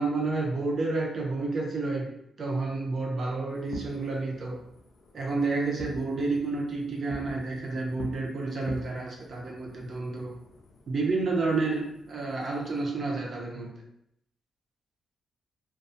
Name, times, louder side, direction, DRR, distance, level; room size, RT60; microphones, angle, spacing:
voice 1, 0.0-4.6 5.1-10.4 10.9-13.7, right 3 dB, 40° right, -1 dB, 0.5 m, -30 dB
Fireworks, 3.5-12.8, left 2 dB, 65° left, 0.4 m, -47 dB
2.5 x 2.2 x 2.6 m, 0.76 s
wide cardioid pair, 165°, 0 cm